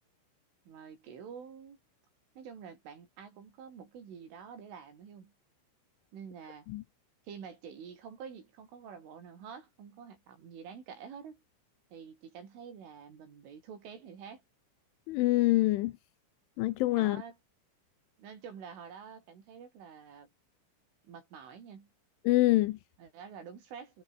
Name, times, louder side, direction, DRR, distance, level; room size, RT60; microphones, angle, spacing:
voice 1, 0.7-1.8 2.4-5.3 6.1-6.7 7.3-11.4 11.9-14.4 16.9-17.4 18.2-20.3 21.0-21.9 23.0-24.0, right 7 dB, 75° right, 7.1 m, -48 dB
voice 2, 15.1-15.9 16.6-17.2 22.3-22.8, left 18 dB, 85° left, 3.3 m, -25 dB
omnidirectional pair, 5.7 m